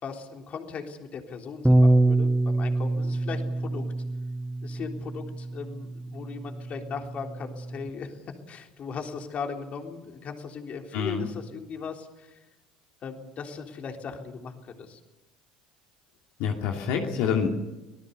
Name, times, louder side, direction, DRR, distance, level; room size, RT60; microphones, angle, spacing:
voice 1, 0.0-3.8 4.6-8.2 8.5-12.4 13.0-15.0, left 5 dB, 45° left, 3 dB, 3.6 m, -38 dB
Bass guitar, 1.6-7.9, right 2 dB, 5° right, 1.2 m, -26 dB
voice 2, 10.9-11.3 16.4-17.5, left 7 dB, 65° left, 0 dB, 2.8 m, -27 dB
25.0 x 19.0 x 6.9 m, 1.0 s
hypercardioid pair, 65°, 3 cm